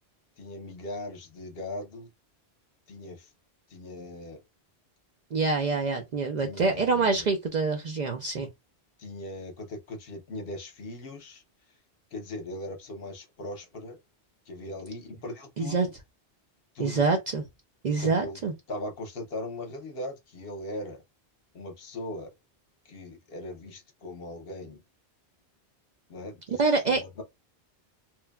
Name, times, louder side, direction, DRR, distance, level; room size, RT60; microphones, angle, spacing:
voice 1, 0.4-2.1 2.9-3.3 3.7-4.4 6.4-7.3 9.0-11.4 12.1-14.0 14.5-15.8 16.7-17.1 18.0-18.4 18.7-21.0 21.5-22.3 22.9-24.8 26.1-27.2, left 1 dB, 60° left, 0.9 m, -39 dB
voice 2, 5.3-8.5 15.6-15.9 16.8-17.4 17.8-18.5 26.5-27.2, right 4 dB, 55° right, 0.5 m, -26 dB
2.9 x 2.1 x 2.3 m
omnidirectional pair, 1.1 m